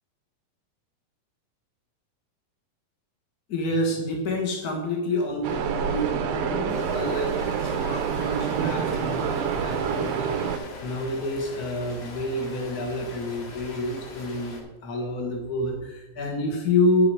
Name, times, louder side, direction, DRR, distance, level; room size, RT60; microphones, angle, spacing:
voice 1, 3.5-17.1, left 1 dB, 45° left, 0 dB, 1.2 m, -28 dB
sound 1, 5.4-10.6, right 7 dB, 85° right, 2.8 m, -27 dB
Rain, 6.7-14.6, left 2 dB, 90° left, 4.9 m, -42 dB
10.5 x 9.6 x 4.9 m, 1.0 s
omnidirectional pair, 4.1 m